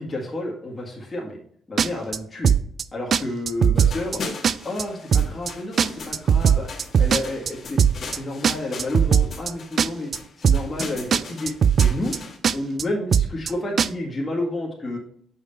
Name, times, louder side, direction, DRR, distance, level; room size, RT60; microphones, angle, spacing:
voice 1, 0.0-1.4 1.7-2.5 2.9-4.2 4.6-6.7 7.0-7.8 8.1-10.1 10.4-11.5 11.8-12.1 12.5-15.0, left 1 dB, 25° left, -3 dB, 1.7 m, -30 dB
sound 1, 1.8-2.2 2.4-2.8 3.1-3.2 3.5-4.2 4.4-4.8 5.1-5.5 5.8-7.5 7.8-8.2 8.4-9.5 9.8-10.2 10.4-10.8 11.1-11.2 11.5-12.2 12.4-12.8 13.1-13.5 13.8-13.9, right 7 dB, 55° right, 0.3 m, -18 dB
sound 2, 3.8-12.4, left 3 dB, 50° left, 1.5 m, -39 dB
6.1 x 5.7 x 4.1 m, 0.63 s
cardioid pair, 90°, 0 cm